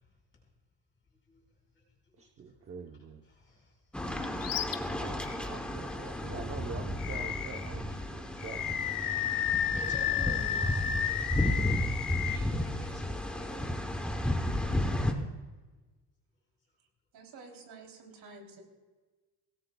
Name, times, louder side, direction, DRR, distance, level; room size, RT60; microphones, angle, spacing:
voice 1, 1.1-1.4 1.7-2.6 3.2-3.8 6.0-6.1 8.0-8.4 9.3-11.2 11.9-14.4, left 1 dB, 30° left, -2 dB, 5.8 m, -50 dB
voice 2, 2.2-3.2 5.0-9.1 12.1-12.3 14.8-15.3, right 5 dB, 35° right, 2 dB, 0.9 m, -45 dB
sound 1, 3.9-15.1, left 1 dB, 5° left, 0.9 m, -33 dB
Animal, 4.4-4.8 5.2-5.4 7.0-7.7 8.4-12.4, left 9 dB, 55° left, 0.9 m, -32 dB
voice 3, 17.1-18.6, right 3 dB, 65° right, 1 dB, 3.4 m, -50 dB
24.0 x 18.0 x 2.3 m, 1.3 s
cardioid pair, 180°, 41 cm